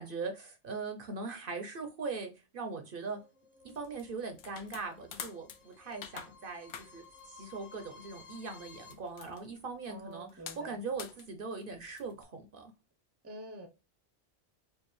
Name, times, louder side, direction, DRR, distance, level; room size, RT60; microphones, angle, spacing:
voice 1, 0.0-3.2 3.6-10.3 10.6-12.7, right 4 dB, 55° right, 0.8 m, -40 dB
sound 1, 2.9-8.9, left 5 dB, 90° left, 1.1 m, -57 dB
sound 2, 3.6-12.2, left 8 dB, 70° left, 0.8 m, -49 dB
voice 2, 9.9-10.8 13.2-13.7, right 1 dB, 15° right, 0.6 m, -46 dB
4.6 x 2.4 x 3.1 m
omnidirectional pair, 1.2 m